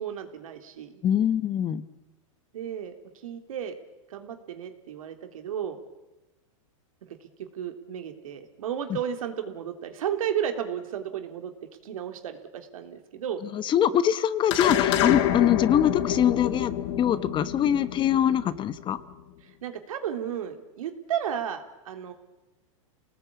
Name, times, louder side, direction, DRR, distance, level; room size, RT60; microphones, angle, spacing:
voice 1, 0.0-1.0 2.5-2.9 3.2-3.7 4.1-5.8 7.0-11.5 11.8-13.4 19.4-22.1, right 9 dB, 80° right, 6 dB, 3.3 m, -33 dB
voice 2, 1.0-1.8 13.5-16.7 17.0-19.0, left 10 dB, 30° left, 14 dB, 1.1 m, -23 dB
sound 1, 14.5-19.1, left 11 dB, 60° left, 2.2 m, -27 dB
28.5 x 19.0 x 8.6 m, 1.0 s
hypercardioid pair, 125°, 17 cm